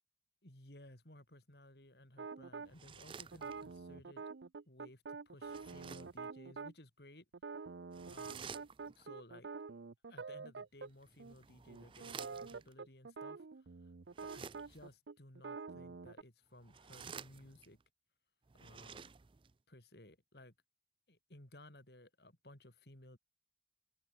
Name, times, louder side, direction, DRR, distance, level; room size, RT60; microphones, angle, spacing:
voice 1, 0.4-4.3 4.7-7.3 8.1-8.5 8.9-9.5 10.1-13.9 14.3-17.8 18.6-19.1 19.7-20.5 21.1-23.2, left 1 dB, 65° left, 4.4 m, -58 dB
sound 1, 2.2-2.7 3.3-6.7 7.3-10.9 11.2-11.4 11.7-16.2, right 4 dB, 90° right, 0.6 m, -47 dB
sound 2, 2.6-3.9 5.4-6.2 7.9-9.1 10.9-12.7 14.1-14.9 16.5-17.8 18.5-19.5, right 6 dB, 30° right, 0.4 m, -52 dB
head